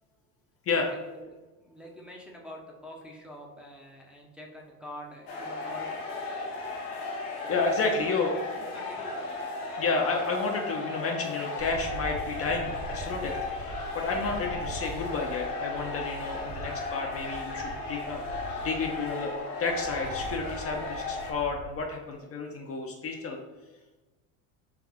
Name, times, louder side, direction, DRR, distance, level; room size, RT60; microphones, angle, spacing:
voice 1, 0.9-6.1 7.4-9.3, equal, ahead, -2 dB, 0.7 m, -46 dB
sound 1, 5.3-21.3, left 3 dB, 90° left, 1.0 m, -35 dB
voice 2, 7.5-8.3 9.8-19.3 19.6-23.4, left 4 dB, 30° left, 1 dB, 0.6 m, -31 dB
sound 2, 11.6-21.8, right 2 dB, 45° right, 0.7 m, -43 dB
3.6 x 3.4 x 3.5 m, 1.2 s
hypercardioid pair, 90°, 44 cm